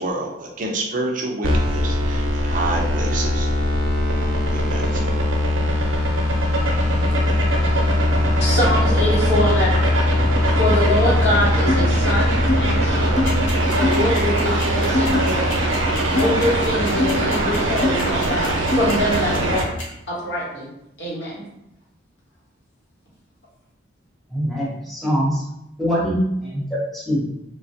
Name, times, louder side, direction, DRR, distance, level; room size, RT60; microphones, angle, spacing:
voice 1, 0.0-3.5 4.5-5.0, right 2 dB, 40° right, 1 dB, 0.5 m, -28 dB
sound 1, 1.4-19.6, equal, 80° right, 0.6 m, -20 dB
voice 2, 8.4-10.0 10.6-13.3 13.7-15.6 16.1-19.6 20.1-20.7 21.0-21.5, left 1 dB, 60° left, -6 dB, 1.0 m, -24 dB
sound 2, 11.7-11.8 12.5-12.6 13.2-13.3 13.8-14.0 14.9-15.2 16.2-16.3 17.0-17.1 17.8-17.9 18.7-18.9, left 2 dB, 30° left, 0.3 m, -21 dB
sound 3, 13.3-19.8, left 2 dB, 85° left, 0.9 m, -34 dB
voice 3, 24.3-25.4 25.8-27.3, equal, ahead, -6 dB, 0.7 m, -23 dB
3.3 x 2.1 x 2.7 m, 0.83 s
head